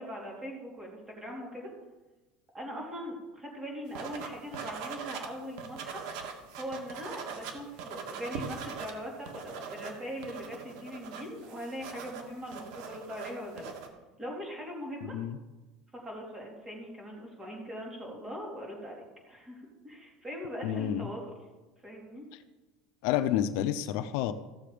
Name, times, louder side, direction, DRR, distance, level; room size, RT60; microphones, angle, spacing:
voice 1, 0.0-1.7 2.5-6.0 6.6-13.7 14.2-15.1 15.9-21.2 21.8-22.3, equal, 15° right, -2 dB, 3.3 m, -41 dB
sound 1, 3.9-5.3 5.6-8.9 9.2-13.9, right 6 dB, 75° right, 1.8 m, -41 dB
voice 2, 20.6-21.1 22.3-22.4 23.0-24.3, left 11 dB, 65° left, 10 dB, 0.6 m, -29 dB
15.0 x 6.9 x 5.0 m, 1.1 s
cardioid pair, 155°, 3 cm